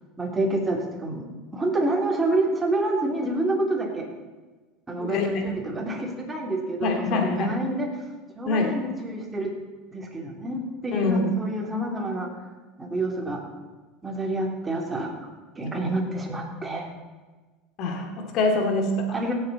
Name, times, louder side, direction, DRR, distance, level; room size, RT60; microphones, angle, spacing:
voice 1, 0.2-1.2 1.5-4.1 4.9-7.9 8.4-9.5 9.9-12.3 12.8-13.4 14.0-15.3 15.5-16.9 19.1-19.3, right 2 dB, 15° right, 0 dB, 3.0 m, -28 dB
voice 2, 5.0-5.3 5.7-5.8 6.8-7.6 8.5-8.8 10.9-11.3 17.8-19.1, left 3 dB, 55° left, 3 dB, 2.3 m, -25 dB
16.5 x 8.1 x 4.1 m, 1.3 s
hypercardioid pair, 90°, 0 cm